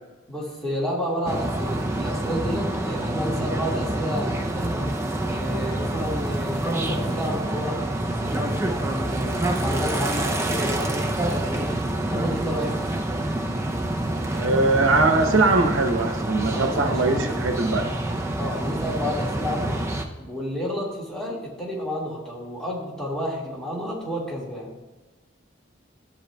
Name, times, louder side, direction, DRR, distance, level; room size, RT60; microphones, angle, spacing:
voice 1, 0.3-4.9 5.3-7.8 8.2-11.7 12.1-12.8 16.5-17.3 18.4-19.8 20.2-24.7, equal, 5° left, -5 dB, 1.8 m, -31 dB
sound 1, 1.3-20.1, right 1 dB, 15° right, 0.5 m, -27 dB
voice 2, 14.3-17.9, right 3 dB, 90° right, 4 dB, 0.9 m, -21 dB
13.0 x 7.6 x 2.2 m, 1.2 s
head